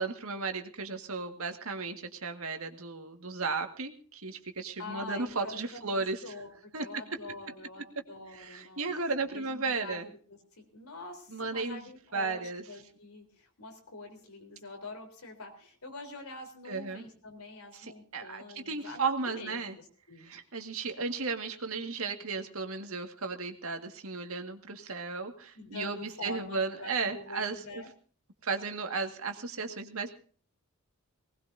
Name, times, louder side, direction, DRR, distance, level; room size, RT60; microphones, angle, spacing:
voice 1, 0.0-6.2 6.7-6.9 8.3-10.1 11.3-12.6 16.7-17.0 17.7-19.8 20.2-27.8 28.4-30.1, right 4 dB, 70° right, 6 dB, 1.9 m, -35 dB
voice 2, 4.8-10.2 10.6-20.3 25.5-27.9, left 2 dB, 80° left, 3 dB, 3.9 m, -45 dB
20.0 x 19.0 x 2.7 m, 0.41 s
head